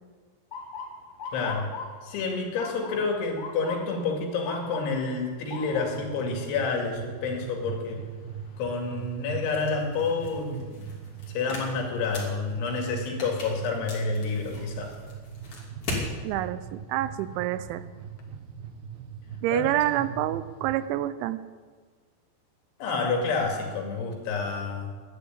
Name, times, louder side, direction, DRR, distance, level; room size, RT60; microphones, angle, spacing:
Motor vehicle (road) / Siren, 0.5-12.4 12.8-13.3 14.1-14.4 16.2-16.5 17.0-17.1 17.5-18.2, left 4 dB, 55° left, 2.1 m, -44 dB
voice 1, 1.3-1.7 2.0-8.0 8.6-10.9 11.3-15.0 19.5-19.7 20.0-20.1 22.8-25.0, left 4 dB, 80° left, 1 dB, 4.7 m, -29 dB
sound 1, 5.7-20.9, right 7 dB, 70° right, 2.4 m, -41 dB
sound 2, 9.5-16.1, left 2 dB, 35° left, 3.3 m, -39 dB
voice 2, 16.2-17.8 19.4-21.4, right 14 dB, 85° right, 14 dB, 3.0 m, -27 dB
11.5 x 10.5 x 8.9 m, 1.5 s
omnidirectional pair, 5.4 m